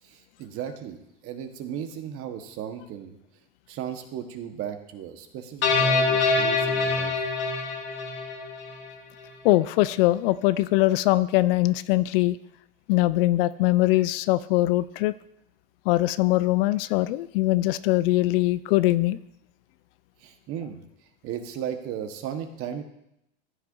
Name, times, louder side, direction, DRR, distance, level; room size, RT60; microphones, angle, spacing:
voice 1, 0.0-1.0 1.2-3.2 3.7-7.1 20.2-20.8 21.2-22.8, right 9 dB, 45° right, 6 dB, 1.3 m, -35 dB
sound 1, 5.6-8.9, left 4 dB, 35° left, 2.3 m, -25 dB
voice 2, 9.4-12.4 12.9-15.1 15.9-19.2, left 17 dB, 65° left, 16 dB, 0.5 m, -22 dB
14.5 x 8.5 x 2.7 m, 0.80 s
hypercardioid pair, 110°, 31 cm